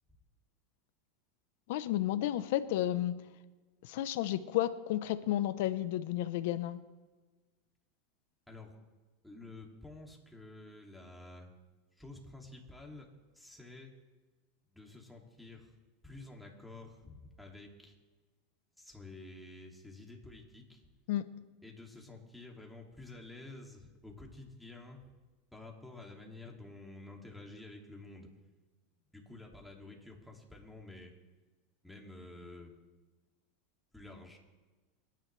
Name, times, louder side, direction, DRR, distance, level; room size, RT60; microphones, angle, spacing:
voice 1, 1.7-3.2 3.8-6.8 21.1-21.2, left 13 dB, 75° left, 13 dB, 0.9 m, -32 dB
voice 2, 9.2-11.5 12.0-13.1 13.3-13.9 14.7-15.7 16.0-17.9 18.8-20.8 21.6-25.0 25.5-28.3 29.1-31.1 31.8-32.7 33.9-34.4, left 2 dB, ahead, -1 dB, 2.7 m, -50 dB
27.0 x 10.5 x 3.4 m, 1.3 s
supercardioid pair, 120°, 0 cm